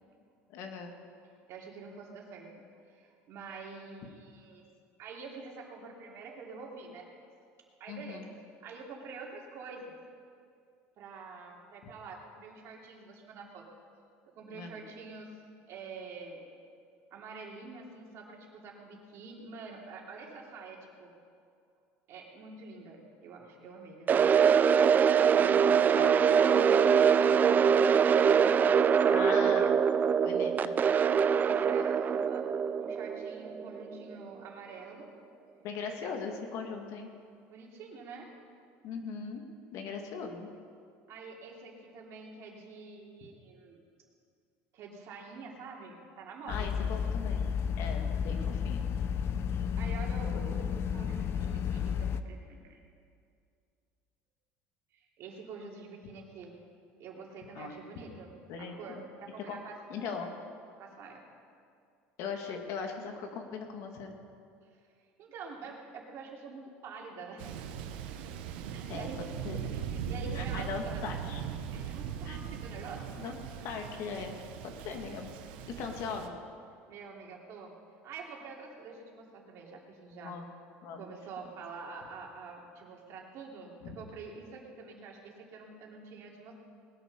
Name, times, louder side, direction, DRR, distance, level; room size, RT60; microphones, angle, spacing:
voice 1, 0.5-0.9 7.9-8.3 14.5-14.8 26.0-26.1 29.1-29.7 30.2-30.7 35.6-37.1 38.8-39.4 39.7-40.5 46.4-47.5 47.8-48.8 57.5-57.7 58.5-59.0 59.5-59.6 59.9-60.3 62.2-64.1 68.9-69.1 69.4-69.6 70.3-71.4 72.3-72.5 73.2-73.4 73.6-75.3 75.7-76.4 80.1-80.5 80.8-81.0 83.8-84.0, left 5 dB, 65° left, 3 dB, 2.2 m, -39 dB
voice 2, 1.5-2.5 2.9-4.7 5.0-7.1 7.8-8.3 8.6-10.0 11.0-13.7 14.3-15.3 15.7-16.5 17.1-21.1 22.1-24.4 25.3-25.8 26.3-28.8 31.3-32.5 32.8-35.1 35.8-36.1 37.5-38.3 41.1-43.8 44.7-47.0 49.8-52.8 54.9-56.5 57.0-58.3 58.6-59.8 60.2-60.3 60.8-61.2 65.2-67.4 68.2-68.3 68.6-69.3 69.6-71.1 71.7-73.1 76.9-77.7 78.0-80.4 81.0-86.5, right 4 dB, 55° right, -1 dB, 3.2 m, -46 dB
sound 1, 24.1-34.1, right 7 dB, 30° right, 0.5 m, -24 dB
sound 2, 46.5-52.2, left 7 dB, 45° left, 0.7 m, -32 dB
Thunder, 67.4-76.3, right 8 dB, 90° right, 1.1 m, -39 dB
20.0 x 9.2 x 6.9 m, 2.4 s
supercardioid pair, 115°, 6 cm